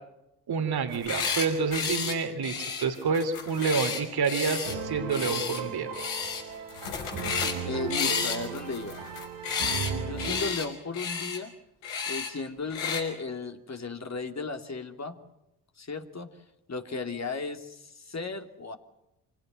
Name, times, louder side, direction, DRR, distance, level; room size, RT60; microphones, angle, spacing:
voice 1, 0.5-6.0, right 5 dB, 55° right, 7 dB, 3.1 m, -28 dB
sound 1, 0.9-1.5 1.7-2.1 2.4-4.7 5.1-5.6 5.9-6.4 6.7-7.6 7.9-9.9 10.2-10.6 10.9-11.4 11.8-12.3 12.7-13.0, left 6 dB, 85° left, 5.4 m, -32 dB
sound 2, 4.4-10.5, right 5 dB, 80° right, 3.2 m, -36 dB
voice 2, 7.6-9.0 10.0-11.5 12.1-15.2 15.8-16.3 16.7-18.8, left 4 dB, 35° left, 5 dB, 3.1 m, -35 dB
26.0 x 18.0 x 9.2 m, 0.89 s
hypercardioid pair, 50°, 44 cm